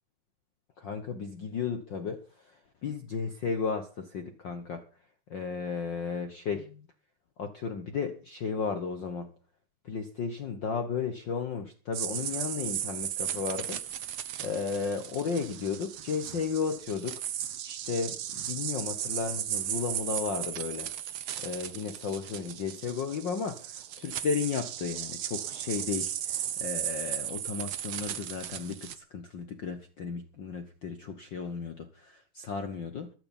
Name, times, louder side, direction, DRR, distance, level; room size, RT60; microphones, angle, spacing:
voice 1, 0.8-2.2 2.8-4.8 5.3-6.9 7.4-9.3 9.8-13.8 14.4-17.2 17.6-20.9 21.4-33.1, left 5 dB, 70° left, 8 dB, 1.0 m, -34 dB
sound 1, 11.9-28.9, right 10 dB, 75° right, 1.2 m, -36 dB
14.0 x 12.0 x 5.4 m, 0.37 s
omnidirectional pair, 3.7 m